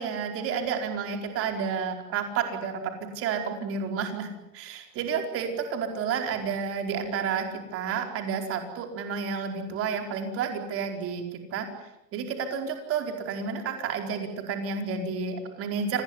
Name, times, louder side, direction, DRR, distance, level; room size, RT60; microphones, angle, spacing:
voice 1, 0.0-2.8 3.1-4.3 4.5-11.7 12.1-16.0, right 6 dB, 25° right, 5 dB, 4.8 m, -30 dB
27.5 x 21.0 x 9.9 m, 0.91 s
supercardioid pair, 160°, 50 cm